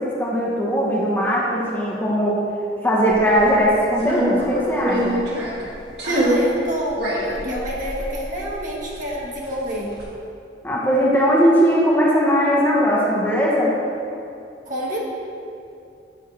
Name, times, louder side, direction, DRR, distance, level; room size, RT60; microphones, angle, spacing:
voice 1, 0.0-2.4 2.8-5.2 10.6-13.7, equal, 10° left, -5 dB, 1.1 m, -19 dB
sound 1, 3.1-3.5 4.0-5.7 6.0-6.5 6.9-9.2 9.4-10.0, right 1 dB, 75° right, 1.9 m, -24 dB
voice 2, 6.0-10.0 14.6-15.0, equal, 45° right, -4 dB, 1.4 m, -29 dB
9.4 x 3.6 x 6.0 m, 2.6 s
head